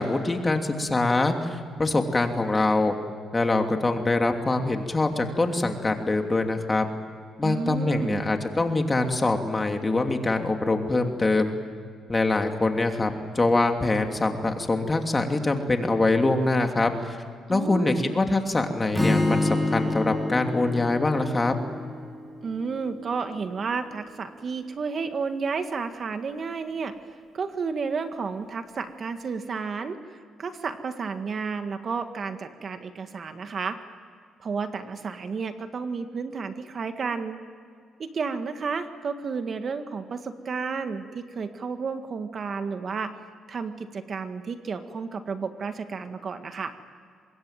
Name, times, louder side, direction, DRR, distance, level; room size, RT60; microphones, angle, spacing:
voice 1, 0.0-2.9 3.3-6.9 7.4-11.6 12.1-17.2 17.5-21.6, left 2 dB, 25° left, 4 dB, 2.9 m, -24 dB
voice 2, 7.4-8.2 17.5-18.1 22.4-26.9 27.3-33.8 34.4-37.4 38.0-43.2 43.5-46.7, right 5 dB, 45° right, 8 dB, 1.7 m, -32 dB
Strum, 18.9-23.1, left 2 dB, ahead, 3.5 m, -28 dB
25.0 x 21.5 x 9.2 m, 2.2 s
cardioid pair, 90°, 0 cm